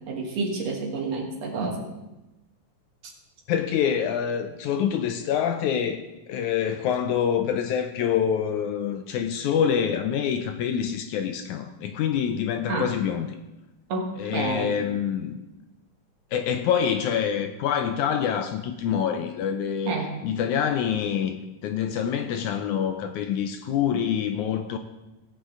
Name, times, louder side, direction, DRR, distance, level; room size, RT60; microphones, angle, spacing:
voice 1, 0.1-1.9 12.7-12.9 13.9-14.7 19.9-20.2, right 3 dB, 55° right, 1 dB, 2.4 m, -29 dB
voice 2, 3.5-6.0 6.3-13.3 14.2-15.4 16.3-20.0 20.2-21.4 21.6-24.8, left 8 dB, 80° left, 7 dB, 1.9 m, -26 dB
17.0 x 8.7 x 3.8 m, 1.0 s
omnidirectional pair, 3.8 m